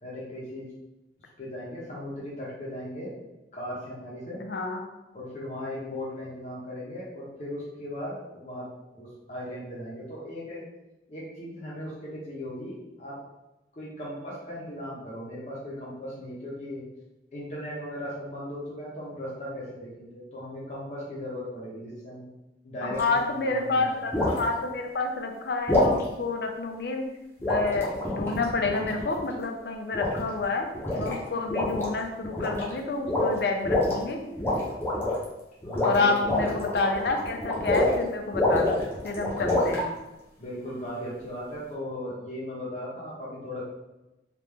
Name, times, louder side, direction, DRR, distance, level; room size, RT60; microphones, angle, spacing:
voice 1, 0.0-0.7 1.4-3.1 3.5-4.4 5.1-10.6 11.1-13.2 13.7-16.8 17.3-22.3 22.6-23.9 35.6-36.6 39.3-39.6 40.4-43.6, left 1 dB, 40° left, -7 dB, 0.8 m, -37 dB
voice 2, 4.4-4.8 22.8-27.0 27.5-30.7 31.0-34.2 35.8-39.9, left 3 dB, 60° left, 4 dB, 0.5 m, -29 dB
sound 1, 22.9-23.2 24.1-24.4 25.7-26.0 27.4-29.3 29.9-30.4 30.7-31.2 31.5-31.9 32.2-32.7 33.1-34.0 34.4-35.2 35.6-38.0 38.3-39.8, left 1 dB, 15° left, 0.8 m, -26 dB
3.6 x 2.5 x 3.2 m, 0.98 s
head